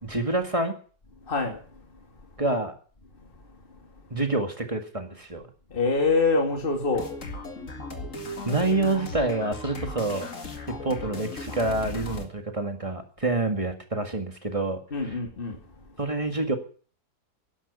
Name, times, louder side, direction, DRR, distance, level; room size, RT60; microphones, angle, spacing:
voice 1, 0.0-0.7 2.4-2.7 4.1-5.5 8.5-10.3 10.7-15.2 16.0-16.6, right 2 dB, 20° right, 1.9 m, -27 dB
voice 2, 1.2-1.9 3.2-3.3 5.7-7.1 7.8-7.9 14.9-15.6, left 3 dB, 35° left, 2.7 m, -25 dB
sound 1, 6.9-12.3, left 2 dB, 50° left, 2.5 m, -37 dB
12.0 x 11.0 x 8.4 m
omnidirectional pair, 1.7 m